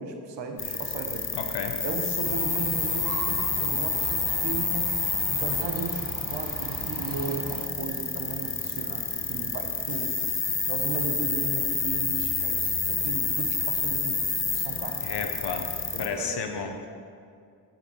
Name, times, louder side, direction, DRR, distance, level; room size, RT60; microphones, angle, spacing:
voice 1, 0.0-1.4 1.8-10.1 10.7-14.2 14.5-15.1 15.9-16.5, right 4 dB, 85° right, 4 dB, 1.0 m, -36 dB
sound 1, 0.6-16.1, left 4 dB, 30° left, 1.0 m, -29 dB
voice 2, 1.3-1.8 15.0-15.7 16.0-16.9, left 5 dB, 70° left, 5 dB, 0.9 m, -32 dB
sound 2, 2.2-7.7, right 6 dB, 50° right, 0.7 m, -38 dB
7.9 x 5.8 x 7.0 m, 2.3 s
cardioid pair, 65°, 42 cm